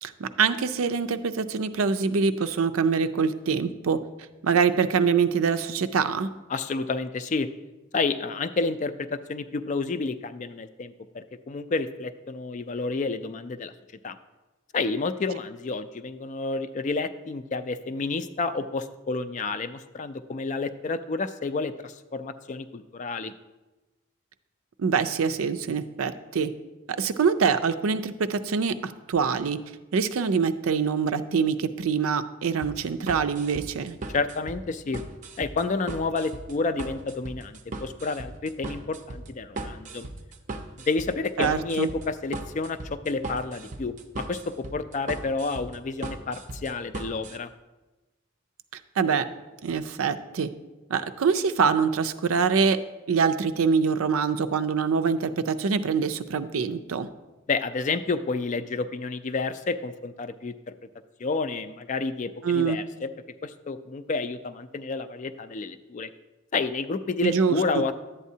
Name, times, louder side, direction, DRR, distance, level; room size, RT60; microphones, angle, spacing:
voice 1, 0.0-4.0 4.4-6.3 24.8-26.5 27.0-29.6 29.9-34.0 41.4-41.9 49.0-49.3 49.6-50.5 50.9-52.8 53.1-57.1 62.4-62.8 67.2-67.8, right 5 dB, 90° right, 11 dB, 0.5 m, -24 dB
voice 2, 6.5-7.5 7.9-13.7 14.0-14.2 14.7-23.3 34.1-35.0 35.4-40.1 40.9-47.5 57.5-60.6 61.2-63.1 63.4-66.1 66.5-67.9, left 3 dB, 35° left, 11 dB, 0.3 m, -30 dB
sound 1, 32.6-47.4, right 2 dB, 35° right, 0.5 m, -38 dB
11.0 x 8.2 x 2.7 m, 1.1 s
head